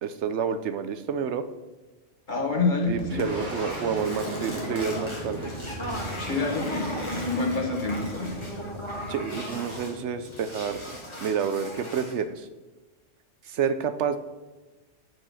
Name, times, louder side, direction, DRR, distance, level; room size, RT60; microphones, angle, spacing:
voice 1, 0.0-1.4 2.9-5.4 9.1-10.8 11.2-12.5 13.4-14.2, right 7 dB, 70° right, 10 dB, 0.8 m, -29 dB
voice 2, 2.3-3.2 6.2-8.4, left 3 dB, 40° left, 0 dB, 1.6 m, -27 dB
Boom, 2.3-11.7, right 1 dB, 40° right, 1.9 m, -38 dB
sound 1, 3.2-10.0 10.3-12.2, left 1 dB, 25° left, 1.5 m, -37 dB
8.8 x 4.6 x 5.7 m, 1.1 s
omnidirectional pair, 1.3 m